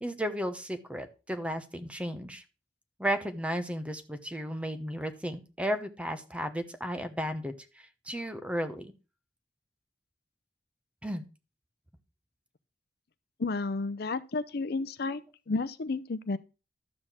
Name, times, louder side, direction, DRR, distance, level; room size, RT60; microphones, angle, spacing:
voice 1, 0.0-2.4 3.0-8.9 11.0-11.3, equal, 5° right, 1.0 m, -34 dB
voice 2, 13.4-15.2 15.5-16.4, left 3 dB, 60° left, 0.6 m, -31 dB
12.0 x 4.4 x 7.4 m
head